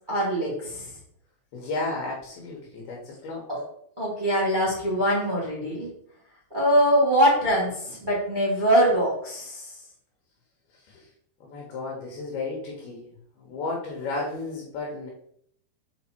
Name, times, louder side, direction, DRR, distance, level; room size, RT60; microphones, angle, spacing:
voice 1, 0.1-0.8 3.5-3.6 4.0-5.9 6.5-9.7, equal, 20° right, -7 dB, 1.5 m, -23 dB
voice 2, 1.5-2.6 2.9-3.0 3.2-3.4 11.5-13.0 13.5-15.1, left 3 dB, 65° left, -1 dB, 3.0 m, -32 dB
6.7 x 5.0 x 4.5 m, 0.67 s
omnidirectional pair, 5.3 m